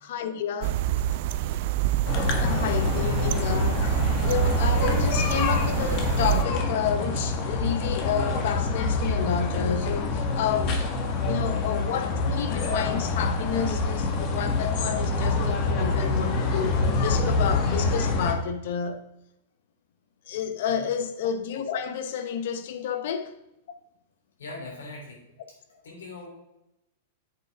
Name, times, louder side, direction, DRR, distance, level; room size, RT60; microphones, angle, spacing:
voice 1, 0.0-0.8 2.3-10.8 11.2-19.0 20.3-23.3, left 8 dB, 65° left, 0.9 m, -30 dB
sound 1, 0.6-6.4, right 13 dB, 55° right, 0.4 m, -27 dB
sound 2, 2.1-18.3, left 3 dB, 45° left, 1.5 m, -26 dB
voice 2, 24.4-25.2 25.5-26.3, left 2 dB, 90° left, 3.3 m, -41 dB
8.0 x 6.8 x 3.6 m
hypercardioid pair, 130°, 0 cm